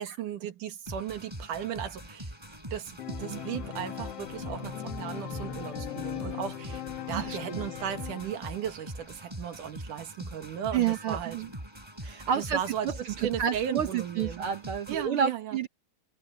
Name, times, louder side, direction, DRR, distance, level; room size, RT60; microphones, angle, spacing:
voice 1, 0.0-2.3 2.7-6.8 7.1-11.4 12.4-14.5 14.9-15.6, right 9 dB, 80° right, 3.1 m, -36 dB
sound 1, 0.9-15.1, right 1 dB, 5° right, 4.8 m, -43 dB
Organ, 3.0-8.7, left 9 dB, 55° left, 2.1 m, -39 dB
voice 2, 7.1-7.6 10.7-11.5 12.0-15.7, right 8 dB, 65° right, 1.4 m, -30 dB
omnidirectional pair, 3.7 m